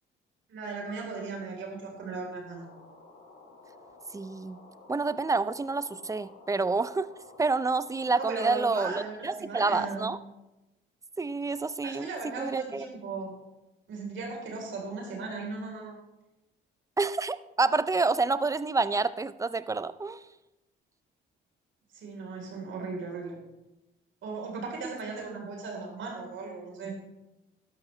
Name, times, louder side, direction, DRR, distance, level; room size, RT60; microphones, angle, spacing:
voice 1, 0.5-2.7 8.1-10.1 11.8-13.3 13.9-16.0 21.9-23.4 24.2-26.9, right 4 dB, 75° right, 0 dB, 4.1 m, -37 dB
sound 1, 2.5-9.0, left 3 dB, 90° left, 3.6 m, -53 dB
voice 2, 4.1-4.6 4.9-7.1 7.4-10.2 11.2-12.1 12.4-12.8 17.0-20.2 24.8-24.9, right 3 dB, 15° right, 15 dB, 0.5 m, -28 dB
12.0 x 11.5 x 3.3 m, 0.98 s
cardioid pair, 90°, 20 cm